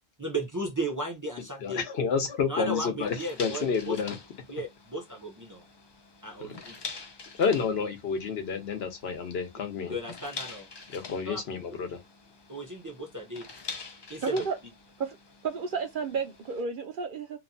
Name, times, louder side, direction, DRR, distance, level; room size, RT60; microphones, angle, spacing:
voice 1, 0.2-1.8 2.5-3.9 4.5-5.7 6.2-6.8 9.9-10.7 11.2-11.4 12.5-13.5 14.1-14.5, right 1 dB, 25° right, 0.5 m, -35 dB
voice 2, 1.6-4.2 6.4-6.6 7.4-10.0 10.9-12.0, left 6 dB, 75° left, 1.0 m, -30 dB
sound 1, 3.0-16.6, left 4 dB, 45° left, 0.3 m, -45 dB
voice 3, 14.2-14.6 15.0-15.2 15.4-17.4, right 5 dB, 60° right, 0.7 m, -31 dB
2.9 x 2.1 x 2.5 m
omnidirectional pair, 1.1 m